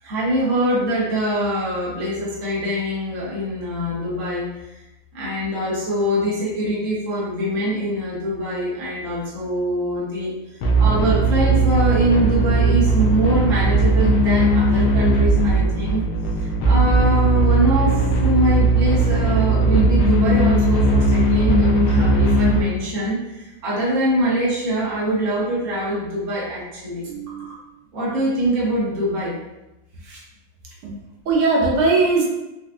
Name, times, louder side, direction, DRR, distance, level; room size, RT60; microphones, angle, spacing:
voice 1, 0.0-4.8 5.1-10.3 10.8-16.0 16.4-27.0 27.9-29.3 30.0-30.2, right 1 dB, 45° right, -7 dB, 1.2 m, -23 dB
sound 1, 10.6-22.6, right 2 dB, 90° left, 1.5 m, -18 dB
voice 2, 27.1-27.4 30.8-30.9 31.3-32.3, right 3 dB, 85° right, -2 dB, 1.6 m, -19 dB
4.4 x 2.3 x 2.5 m, 0.97 s
omnidirectional pair, 2.3 m